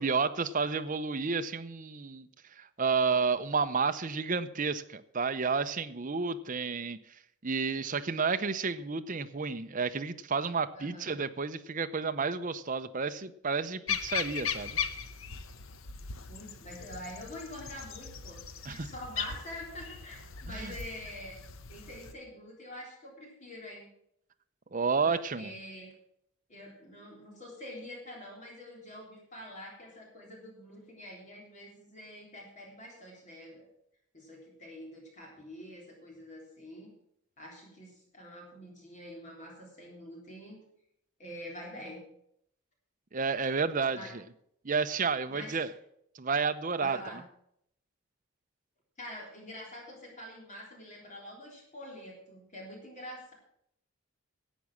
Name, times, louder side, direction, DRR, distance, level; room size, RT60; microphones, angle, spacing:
voice 1, 0.0-2.3 2.6-7.0 7.4-14.8 18.7-18.9 20.5-20.7 24.7-25.6 43.1-44.2 44.6-45.7 46.1-47.0, right 5 dB, 35° right, 10 dB, 0.7 m, -31 dB
voice 2, 10.7-11.1 16.3-18.4 18.7-21.4 21.7-23.9 25.0-25.9 26.5-33.7 34.1-36.9 37.4-40.6 41.2-42.0 43.9-44.1 45.3-45.6 46.8-47.2 49.0-53.3, left 1 dB, 35° left, -1 dB, 3.6 m, -46 dB
sound 1, 13.9-22.1, left 7 dB, 65° left, 0.9 m, -38 dB
11.5 x 8.3 x 7.4 m, 0.73 s
head